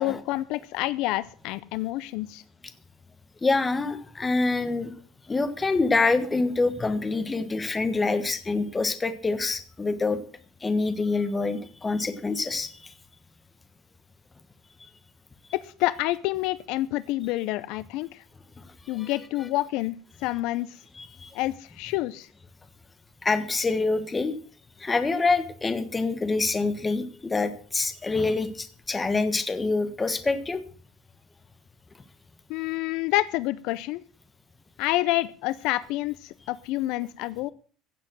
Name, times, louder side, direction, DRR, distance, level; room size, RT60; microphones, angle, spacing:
voice 1, 0.0-2.4 15.6-18.2 18.9-20.8 21.3-22.3 32.5-34.0 34.8-37.5, left 17 dB, 55° left, 17 dB, 0.6 m, -28 dB
voice 2, 3.4-4.9 5.3-10.2 10.6-12.9 14.8-14.9 18.6-18.7 19.0-19.1 21.0-21.3 23.2-24.3 24.8-30.6, left 3 dB, 10° left, 10 dB, 1.3 m, -26 dB
15.5 x 7.5 x 7.5 m, 0.42 s
cardioid pair, 170°, 0 cm